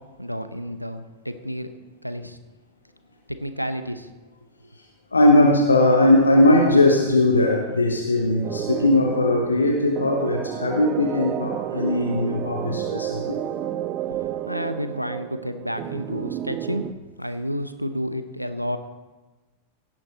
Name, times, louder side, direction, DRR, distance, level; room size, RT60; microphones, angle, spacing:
voice 1, 0.2-1.7 2.0-2.4 3.3-4.1 14.5-18.8, equal, 90° right, 10 dB, 0.8 m, -30 dB
voice 2, 5.1-13.4, left 1 dB, 80° left, 3 dB, 1.1 m, -19 dB
sound 1, 8.4-16.9, right 11 dB, 35° right, 0.5 m, -31 dB
17.0 x 8.9 x 3.9 m, 1.2 s
figure-of-eight pair, 90°, 0 cm